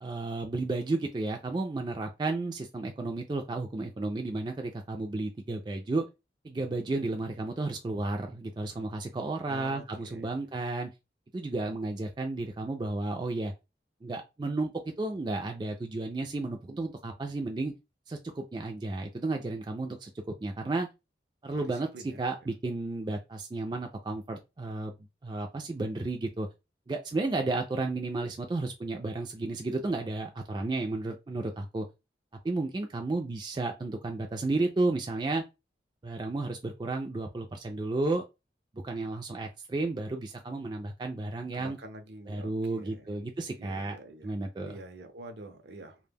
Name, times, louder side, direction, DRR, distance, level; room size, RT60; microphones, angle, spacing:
voice 1, 0.0-6.0 6.4-10.9 11.3-13.5 14.0-14.7 15.0-17.7 18.1-20.1 20.4-20.9 21.4-24.9 25.2-26.5 26.9-31.9 32.4-35.4 36.0-38.2 38.8-41.8 42.3-44.0 44.2-44.7, right 2 dB, 25° right, 0.3 m, -32 dB
voice 2, 9.5-10.7 21.9-22.2 41.5-43.2 43.6-44.3 44.6-46.0, right 1 dB, 70° right, 0.5 m, -47 dB
2.1 x 2.1 x 3.3 m
head